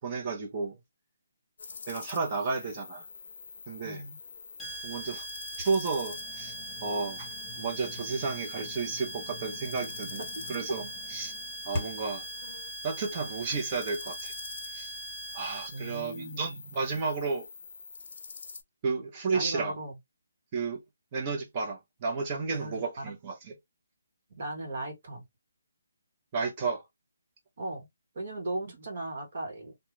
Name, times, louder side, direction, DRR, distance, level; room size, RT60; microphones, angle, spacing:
voice 1, 0.0-0.8 1.9-3.0 3.7-4.0 4.8-5.2 5.6-6.5 6.8-7.3 7.6-10.2 10.5-11.3 11.6-12.2 12.8-14.3 14.7-14.9 15.3-17.5 18.8-19.7 20.5-20.8 21.1-23.5 26.3-26.8, right 4 dB, 25° right, 0.6 m, -32 dB
sound 1, 1.6-18.6, left 5 dB, 55° left, 0.5 m, -46 dB
voice 2, 3.8-4.2 10.2-10.4 15.7-16.6 19.3-19.9 22.5-23.1 24.3-25.2 27.6-27.9 28.1-29.8, right 2 dB, 50° right, 1.0 m, -37 dB
sound 2, 4.6-16.0, right 2 dB, ahead, 0.8 m, -41 dB
sound 3, 5.5-12.2, left 2 dB, 30° left, 1.2 m, -44 dB
2.3 x 2.1 x 3.0 m
hypercardioid pair, 165°, 0 cm